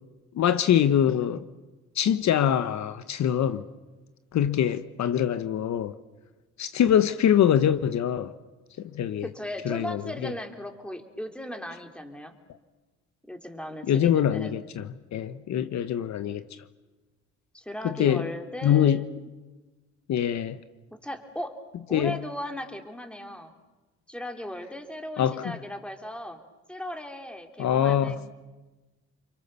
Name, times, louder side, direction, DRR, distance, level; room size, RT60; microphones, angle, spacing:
voice 1, 0.3-1.4 1.9-3.6 4.3-5.9 6.6-8.3 8.8-9.3 9.6-10.3 13.8-16.4 17.8-18.3 18.6-19.1 20.1-20.6 21.9-22.2 25.2-25.4 27.6-28.2, left 9 dB, 65° left, 1.0 m, -24 dB
voice 2, 9.2-12.3 13.3-14.6 17.5-19.1 21.0-21.5 21.9-23.5 24.1-26.4 26.7-28.3, left 1 dB, 5° left, 3.3 m, -37 dB
29.5 x 23.0 x 6.9 m
cardioid pair, 90°, 30 cm